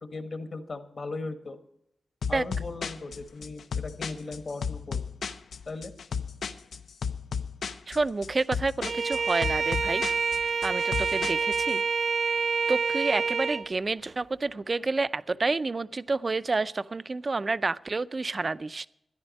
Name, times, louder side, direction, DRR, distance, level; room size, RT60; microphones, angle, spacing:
voice 1, 0.0-1.6 2.3-5.0 5.7-5.9, left 3 dB, 50° left, 8 dB, 1.3 m, -37 dB
sound 1, 2.2-11.7, left 6 dB, 85° left, 0.7 m, -34 dB
voice 2, 7.9-10.0 10.6-11.8 12.7-18.9, right 3 dB, 35° right, 15 dB, 0.4 m, -29 dB
Bowed string instrument, 8.8-13.7, right 5 dB, 70° right, 1.1 m, -27 dB
13.5 x 10.5 x 5.2 m, 0.81 s
wide cardioid pair, 115°, 0 cm